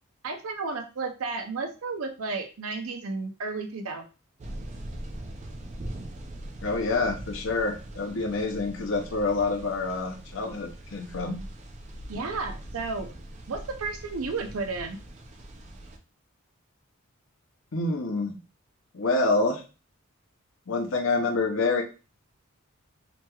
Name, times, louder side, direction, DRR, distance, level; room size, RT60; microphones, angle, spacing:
voice 1, 0.2-4.0 12.1-13.1 13.5-15.0, right 4 dB, 80° right, 5 dB, 0.6 m, -32 dB
sound 1, 4.4-16.0, right 1 dB, 35° right, 0.4 m, -41 dB
voice 2, 6.6-11.4 17.7-18.4 18.9-19.6 20.7-21.8, left 3 dB, 65° left, 3 dB, 0.6 m, -27 dB
3.0 x 2.9 x 2.3 m, 0.33 s
head